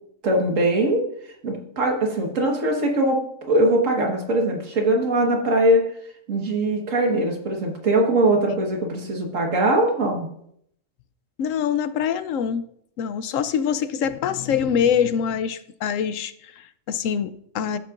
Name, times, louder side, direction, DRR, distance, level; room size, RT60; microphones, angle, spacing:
voice 1, 0.2-1.1 1.4-5.9 6.3-10.3, right 1 dB, 75° right, 1 dB, 1.9 m, -21 dB
voice 2, 11.4-12.6 13.0-17.8, left 8 dB, 80° left, 13 dB, 1.0 m, -24 dB
14.0 x 7.4 x 2.5 m, 0.69 s
omnidirectional pair, 1.4 m